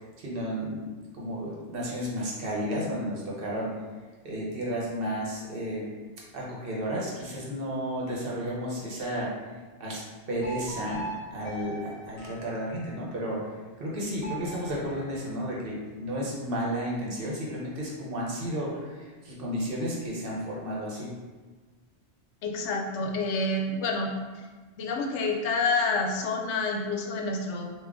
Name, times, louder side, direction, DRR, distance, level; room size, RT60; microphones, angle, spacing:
voice 1, 0.2-0.9 1.1-3.7 4.2-5.9 6.3-9.3 9.8-10.0 10.3-11.1 11.3-13.4 13.8-21.1, equal, 55° right, -4 dB, 1.0 m, -32 dB
sound 1, 10.4-13.1 14.2-15.9, right 2 dB, 35° left, 1.3 m, -41 dB
voice 2, 22.4-24.1 24.8-27.7, left 3 dB, 90° left, 2 dB, 0.9 m, -28 dB
3.6 x 2.5 x 3.5 m, 1.3 s
omnidirectional pair, 1.2 m